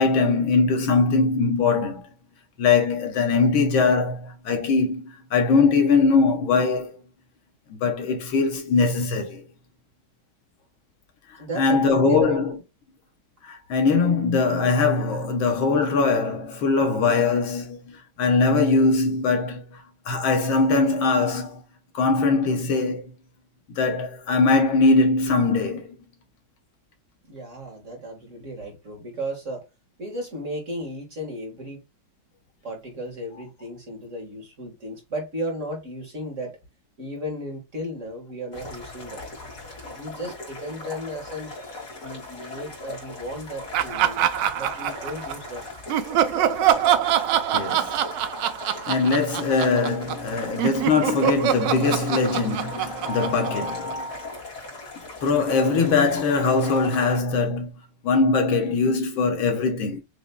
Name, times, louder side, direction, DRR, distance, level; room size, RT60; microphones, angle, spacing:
voice 1, 0.0-2.1 2.6-6.9 7.7-9.4 11.6-12.6 13.4-21.6 21.9-23.0 23.8-26.0 47.5-47.9 48.9-54.4 55.2-57.7 58.0-60.0, left 4 dB, 85° left, 1.9 m, -21 dB
voice 2, 11.4-12.4 27.3-29.6 30.0-31.8 32.6-36.6 37.0-39.2 39.9-41.5 42.0-45.6, right 1 dB, 40° right, 1.9 m, -34 dB
sound 1, 38.5-57.2, left 2 dB, 45° left, 2.4 m, -39 dB
Laughter, 43.7-45.5 45.9-50.3 50.6-54.2, right 11 dB, 70° right, 1.2 m, -24 dB
6.8 x 3.1 x 2.2 m
omnidirectional pair, 2.1 m